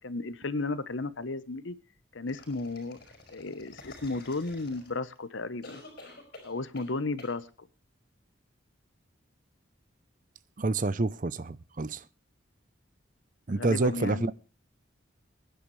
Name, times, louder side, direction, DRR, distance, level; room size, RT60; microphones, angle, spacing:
voice 1, 0.0-1.8 2.1-3.0 3.3-5.8 6.4-7.7 13.5-14.3, left 3 dB, 80° left, 1.0 m, -34 dB
sound 1, 2.3-5.2 5.6-6.9 7.2-7.4, left 2 dB, 50° left, 5.1 m, -49 dB
voice 2, 10.6-12.0 13.5-14.3, right 2 dB, 40° right, 0.6 m, -28 dB
22.0 x 10.5 x 3.2 m
head